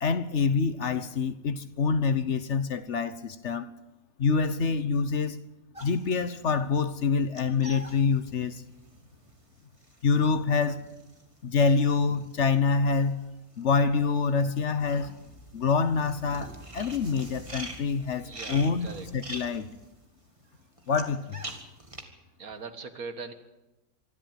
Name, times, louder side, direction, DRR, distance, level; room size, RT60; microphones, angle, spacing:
voice 1, 0.0-3.7 4.2-5.4 5.8-8.6 10.0-10.8 11.4-13.2 13.6-15.1 15.5-19.7 20.9-21.4, left 5 dB, 55° left, 1.3 m, -26 dB
sound 1, 5.7-13.2 13.5-22.0, right 2 dB, 20° right, 2.1 m, -45 dB
voice 2, 18.2-19.1 22.4-23.3, right 4 dB, 80° right, 2.2 m, -40 dB
25.5 x 12.5 x 9.1 m
omnidirectional pair, 1.5 m